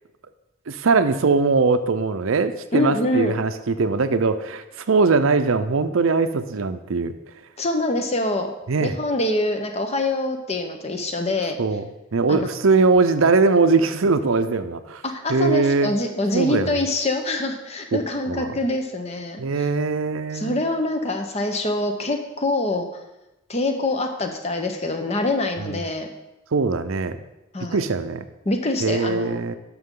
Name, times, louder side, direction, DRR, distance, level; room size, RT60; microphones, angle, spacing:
voice 1, 0.7-7.1 8.7-9.0 11.6-15.0 15.3-15.9 16.3-16.8 18.3-18.5 19.4-20.6 25.6-25.8 26.5-27.2 27.7-28.2 28.8-29.5, right 4 dB, 75° right, 10 dB, 0.6 m, -21 dB
voice 2, 2.7-3.3 7.6-8.5 8.8-11.6 12.3-12.5 15.0-19.7 20.3-22.9 23.5-26.1 27.5-27.9 28.4-29.4, left 2 dB, 30° left, 5 dB, 0.9 m, -25 dB
12.0 x 6.1 x 3.8 m, 0.97 s
head